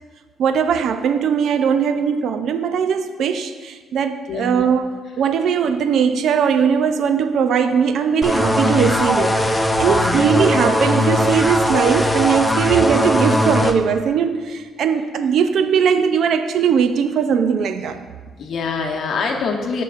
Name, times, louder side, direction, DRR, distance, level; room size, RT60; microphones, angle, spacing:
voice 1, 0.4-18.0, right 7 dB, 70° right, 8 dB, 0.4 m, -19 dB
sound 1, 8.2-13.7, left 1 dB, 10° left, 0.7 m, -19 dB
voice 2, 9.8-10.2 18.4-19.8, left 4 dB, 65° left, 2 dB, 1.0 m, -24 dB
14.5 x 6.5 x 2.5 m, 1.4 s
cardioid pair, 90°, 0 cm